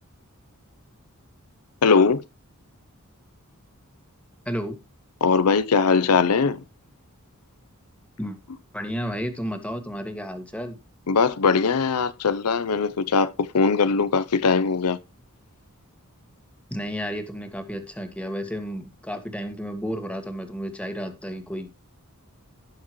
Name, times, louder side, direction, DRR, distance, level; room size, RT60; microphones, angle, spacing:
voice 1, 1.8-2.2 5.2-6.6 11.1-15.0, left 5 dB, 90° left, 0.7 m, -20 dB
voice 2, 4.4-4.8 8.2-8.4 8.7-10.7 16.7-21.7, equal, 5° left, 1.6 m, -32 dB
17.0 x 5.9 x 3.1 m
head